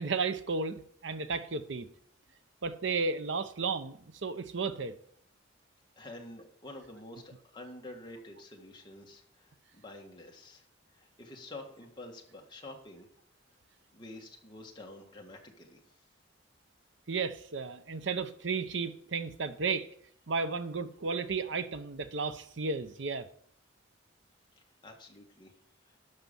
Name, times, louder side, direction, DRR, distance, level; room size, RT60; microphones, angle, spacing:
voice 1, 0.0-1.9 2.6-4.9 17.1-19.9 20.3-23.3, right 4 dB, 70° right, 0.8 m, -33 dB
voice 2, 6.0-10.7 10.9-13.1 13.9-15.8 24.5-25.5 25.8-26.0, left 1 dB, 25° left, 1.8 m, -48 dB
12.0 x 5.9 x 5.5 m
head